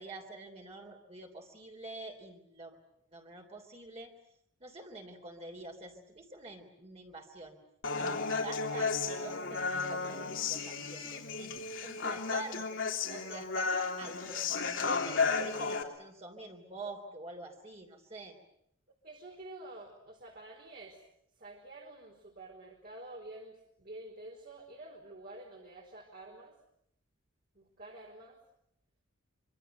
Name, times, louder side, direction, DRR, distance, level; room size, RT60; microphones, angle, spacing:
voice 1, 0.0-2.8 3.1-4.1 4.6-7.6 8.0-8.9 9.2-11.5 11.8-12.7 13.1-18.4, right 2 dB, 30° right, 1 dB, 3.3 m, -47 dB
Human voice, 7.8-15.8, left 4 dB, 65° left, 3.0 m, -33 dB
voice 2, 19.0-21.0 21.4-26.5 27.5-28.4, right 2 dB, 50° right, 0 dB, 4.4 m, -49 dB
25.5 x 25.0 x 8.0 m, 0.73 s
head